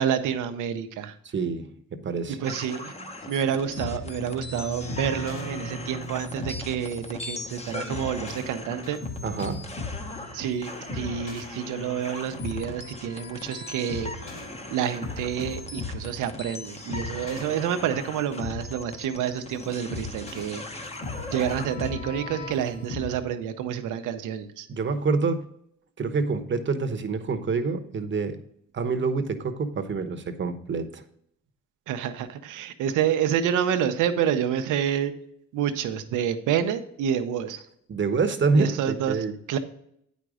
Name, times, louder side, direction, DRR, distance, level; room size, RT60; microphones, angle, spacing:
voice 1, 0.0-1.1 2.4-2.9 3.3-9.0 10.3-14.1 14.7-20.6 21.3-24.7 31.9-35.1 35.5-37.6 38.6-39.2 39.5-39.6, right 9 dB, 90° right, 9 dB, 0.8 m, -28 dB
voice 2, 1.3-2.4 9.2-9.6 24.7-25.5 26.0-28.4 28.7-31.0 37.9-39.3, right 4 dB, 40° right, 7 dB, 1.0 m, -27 dB
sound 1, 2.4-21.9, left 2 dB, 20° left, 1.0 m, -40 dB
sound 2, 3.2-23.1, left 2 dB, 45° left, 3.1 m, -38 dB
9.0 x 5.2 x 4.8 m, 0.71 s
cardioid pair, 90°, 30 cm